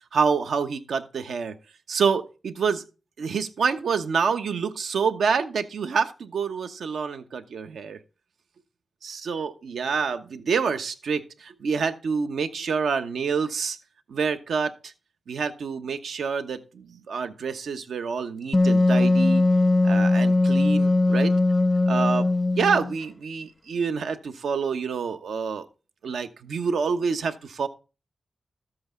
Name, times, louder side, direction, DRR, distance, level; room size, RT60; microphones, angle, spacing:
voice 1, 0.1-1.6 1.9-2.8 3.2-8.0 9.0-13.8 14.1-14.9 15.3-19.4 19.8-21.3 21.9-22.3 22.5-25.7 26.0-27.7, right 5 dB, 85° right, 9 dB, 1.1 m, -27 dB
Wind instrument woodwind instrument, 18.5-23.0, left 2 dB, 20° left, 0.4 m, -20 dB
13.5 x 7.9 x 3.8 m, 0.32 s
wide cardioid pair, 155°, 0 cm